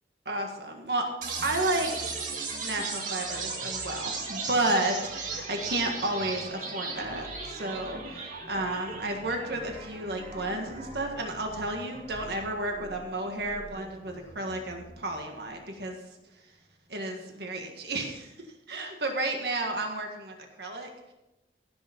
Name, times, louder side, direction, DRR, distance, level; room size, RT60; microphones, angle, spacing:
voice 1, 0.3-1.1 1.4-2.1 2.6-16.0 16.9-18.3 18.7-20.9, right 2 dB, 65° right, 3 dB, 1.7 m, -32 dB
sound 1, 1.2-15.2, right 4 dB, 45° right, 2.1 m, -38 dB
16.5 x 7.0 x 5.3 m, 0.94 s
head